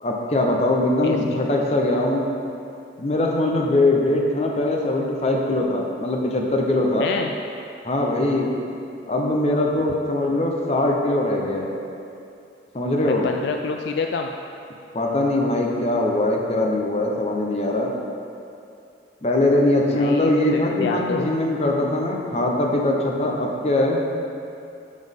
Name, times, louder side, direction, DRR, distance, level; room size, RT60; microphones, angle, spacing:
voice 1, 0.0-2.3 3.0-7.1 7.8-8.5 9.1-11.8 12.7-13.3 14.9-17.9 19.2-24.0, left 1 dB, 35° left, 0 dB, 0.7 m, -21 dB
voice 2, 1.0-1.4 7.0-7.3 13.0-14.3 19.9-21.3, left 5 dB, 65° left, 3 dB, 0.3 m, -28 dB
7.3 x 6.0 x 3.6 m, 2.6 s
head